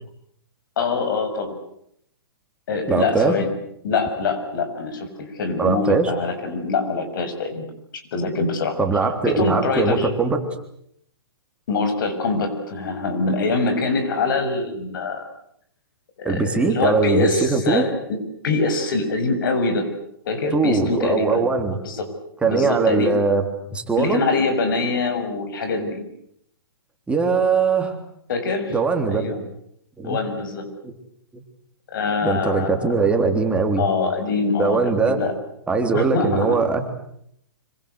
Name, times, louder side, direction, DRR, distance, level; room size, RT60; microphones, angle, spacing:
voice 1, 0.8-1.6 2.7-3.5 3.8-7.6 8.1-8.8 9.2-10.1 11.7-15.3 16.2-18.2 18.4-19.9 20.3-21.4 21.8-22.1 22.4-23.1 24.0-26.0 28.3-28.7 29.1-29.4 30.0-30.7 31.9-32.9 33.8-35.3 35.9-36.6, left 3 dB, 60° left, 8 dB, 6.6 m, -24 dB
voice 2, 2.9-3.4 5.6-6.1 8.8-10.4 16.2-17.8 20.5-21.8 22.4-23.4 23.7-24.2 27.1-27.9 28.7-29.3 30.0-30.2 30.8-30.9 31.3-31.4 32.2-33.8 34.6-35.2 35.7-36.8, right 4 dB, 10° right, 5 dB, 3.4 m, -21 dB
26.0 x 24.5 x 8.3 m, 0.72 s
hypercardioid pair, 135°, 13 cm